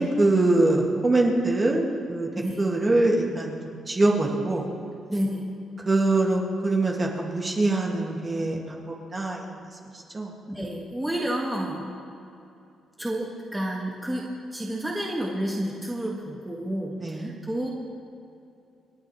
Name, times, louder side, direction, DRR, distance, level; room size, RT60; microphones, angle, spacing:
voice 1, 0.0-2.3 2.6-4.7 5.8-8.8 9.1-9.5 10.1-10.3 17.0-17.3, right 2 dB, 25° right, -1 dB, 2.1 m, -23 dB
voice 2, 2.4-2.7 5.1-5.6 10.5-11.9 13.0-17.7, right 1 dB, 10° right, -3 dB, 1.9 m, -30 dB
27.0 x 9.5 x 3.3 m, 2.7 s
cardioid pair, 90°, 0 cm